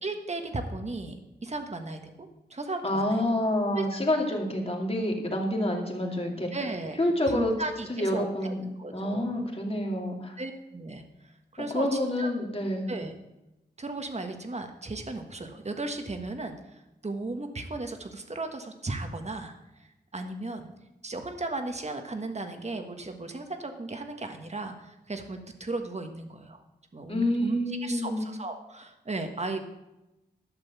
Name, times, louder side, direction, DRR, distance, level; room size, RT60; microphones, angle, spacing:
voice 1, 0.0-1.2 1.4-3.2 3.7-3.8 6.5-7.0 7.3-8.5 8.8-9.5 10.4-12.3 12.9-13.1 13.8-19.5 19.8-20.7 21.0-26.6 26.9-29.6, right 2 dB, 40° right, 5 dB, 1.5 m, -36 dB
voice 2, 2.8-6.5 7.0-7.5 7.9-10.4 11.7-12.9 27.1-28.3, left 1 dB, 35° left, 0 dB, 2.4 m, -28 dB
12.0 x 6.8 x 6.9 m, 0.97 s
wide cardioid pair, 85°, 18 cm